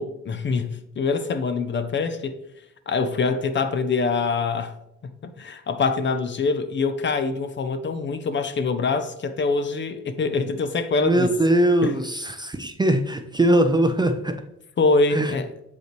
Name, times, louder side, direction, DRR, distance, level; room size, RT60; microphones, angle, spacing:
voice 1, 0.0-2.3 2.9-4.7 5.2-11.3 11.8-11.9 14.8-15.5, left 4 dB, 40° left, 0.6 m, -24 dB
voice 2, 11.0-14.4 15.1-15.4, right 1 dB, 15° right, 0.5 m, -21 dB
6.7 x 5.3 x 3.1 m
cardioid pair, 90°, 30 cm